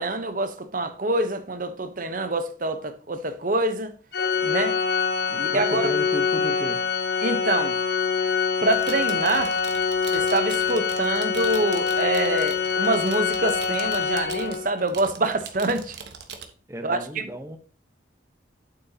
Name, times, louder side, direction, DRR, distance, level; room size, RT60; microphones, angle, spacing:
voice 1, 0.0-3.9 4.4-4.8 5.4-5.9 7.2-7.7 8.6-9.5 10.1-16.0 16.8-17.0, right 2 dB, 45° right, 1.0 m, -26 dB
Organ, 4.1-14.8, left 6 dB, 55° left, 0.7 m, -25 dB
voice 2, 5.3-6.8 16.7-17.6, right 1 dB, 15° right, 1.0 m, -34 dB
sound 1, 8.6-16.5, right 6 dB, 60° right, 1.2 m, -42 dB
8.9 x 7.8 x 2.9 m
head